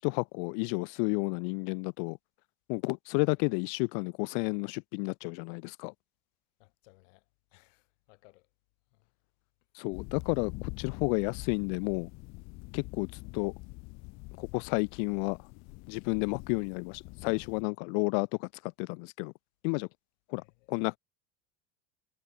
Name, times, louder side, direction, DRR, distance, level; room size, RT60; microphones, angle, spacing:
voice 1, 0.0-2.2 2.7-5.9 9.7-12.1 12.7-13.1 13.3-13.5 14.4-15.4 15.9-19.3 19.6-19.9 20.3-20.4 20.7-21.0, left 40 dB or more, 65° left, 1.0 m, -31 dB
voice 2, 6.6-7.2 7.5-8.5 8.9-9.1 20.4-20.7, left 25 dB, 90° left, 5.1 m, -62 dB
sound 1, 9.9-17.6, left 26 dB, 50° left, 0.7 m, -45 dB
cardioid pair, 165°, 36 cm